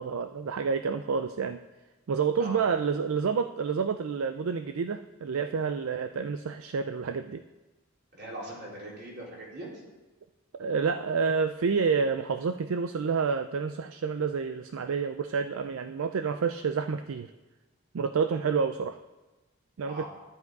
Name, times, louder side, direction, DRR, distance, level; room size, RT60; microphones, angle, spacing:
voice 1, 0.0-1.6 2.1-7.4 10.5-17.3 17.9-19.0 19.8-20.0, right 5 dB, 70° right, 10 dB, 0.4 m, -29 dB
voice 2, 8.1-9.7 19.9-20.1, right 1 dB, 50° right, -4 dB, 3.6 m, -40 dB
10.5 x 10.5 x 4.7 m, 1.2 s
head